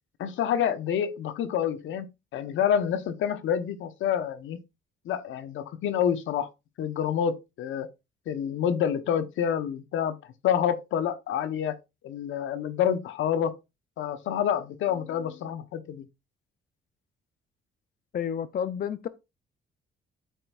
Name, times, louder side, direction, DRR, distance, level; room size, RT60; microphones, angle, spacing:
voice 1, 0.2-4.6 5.0-6.5 6.8-7.9 8.3-10.2 10.4-11.8 12.0-13.6 14.0-16.1, left 9 dB, 75° left, 1.0 m, -28 dB
voice 2, 18.1-19.1, left 8 dB, 50° left, 0.6 m, -30 dB
12.5 x 4.4 x 2.4 m
cardioid pair, 90°, 20 cm